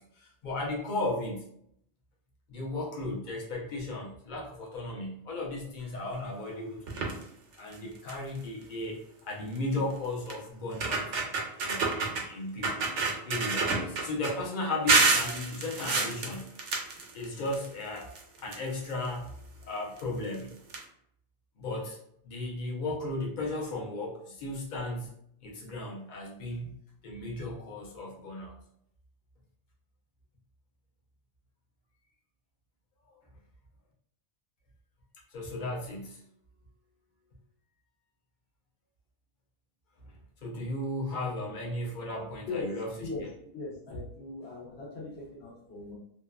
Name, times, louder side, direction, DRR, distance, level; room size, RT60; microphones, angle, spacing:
voice 1, 0.0-1.4 2.5-7.1 7.6-9.0 9.3-11.1 11.6-12.9 13.2-16.5 16.8-19.3 19.7-20.5 21.6-22.0 22.2-25.1 25.4-26.7 27.0-28.5 33.1-33.2 35.3-36.2 40.4-43.3, left 2 dB, 50° left, -3 dB, 0.8 m, -35 dB
sound 1, 6.9-7.2 7.7-7.8 8.1-8.4 9.6-9.7 10.3-10.4 10.7-12.2 12.6-14.3 14.9-17.7 18.0-19.1 20.0-20.1 20.3-20.4 20.7-20.8, right 3 dB, 85° right, 1.0 m, -28 dB
voice 2, 43.0-45.9, left 3 dB, 70° left, -3 dB, 1.1 m, -39 dB
2.8 x 2.3 x 2.3 m, 0.73 s
omnidirectional pair, 1.2 m